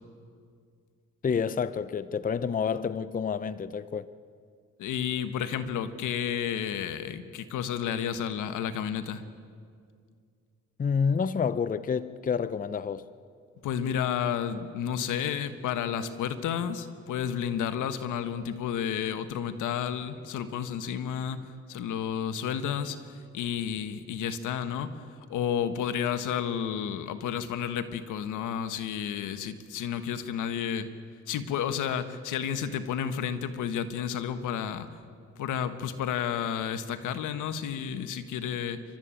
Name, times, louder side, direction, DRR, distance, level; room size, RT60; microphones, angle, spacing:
voice 1, 1.2-4.1 10.8-13.1, left 6 dB, 30° left, 0.6 m, -28 dB
voice 2, 4.8-9.2 13.6-21.4 21.7-25.0 25.3-30.9 31.3-34.9 35.4-38.8, left 8 dB, 80° left, 1.5 m, -31 dB
29.5 x 13.0 x 9.0 m
cardioid pair, 90°, 30 cm